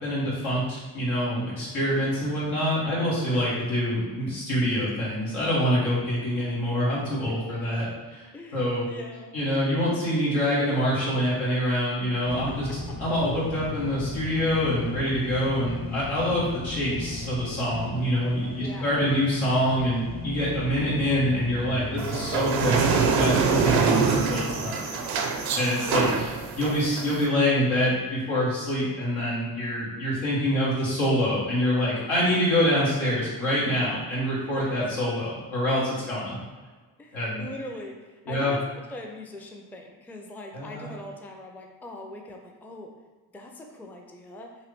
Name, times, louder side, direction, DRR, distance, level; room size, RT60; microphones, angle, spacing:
voice 1, 0.0-7.9 8.1-8.2 8.5-8.8 9.3-12.7 13.0-24.8 25.5-26.1 26.5-36.4 37.1-37.4 38.3-38.5 40.5-40.9, equal, 85° left, -7 dB, 1.2 m, -26 dB
voice 2, 8.3-9.3 12.3-12.8 18.6-18.9 24.5-25.0 25.8-26.2 34.5-34.7 36.3-36.4 37.0-38.6 38.9-42.9 43.3-44.5, left 1 dB, 5° left, 2 dB, 0.4 m, -41 dB
sound 1, 12.3-24.8, left 1 dB, 45° left, 1.2 m, -36 dB
sound 2, 22.0-27.2, right 5 dB, 75° right, 0.6 m, -24 dB
3.0 x 2.6 x 3.1 m, 1.3 s
supercardioid pair, 40°, 48 cm